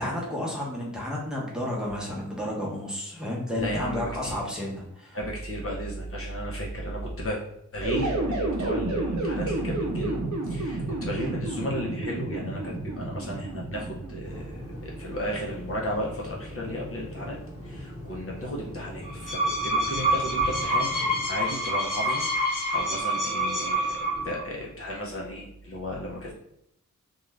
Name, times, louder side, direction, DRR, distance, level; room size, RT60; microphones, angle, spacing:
voice 1, 0.0-5.2, left 1 dB, ahead, -4 dB, 0.8 m, -31 dB
voice 2, 3.5-4.4 5.1-7.4 7.7-17.4 17.6-20.9 21.3-22.2 22.5-26.3, equal, 45° left, -3 dB, 0.6 m, -34 dB
sound 1, 7.8-14.7, right 2 dB, 70° right, 0.6 m, -31 dB
sound 2, 14.2-21.2, left 1 dB, 20° right, 1.1 m, -41 dB
sound 3, 19.0-24.4, right 1 dB, 80° left, 0.9 m, -27 dB
2.5 x 2.3 x 3.1 m, 0.78 s
wide cardioid pair, 95°, 30 cm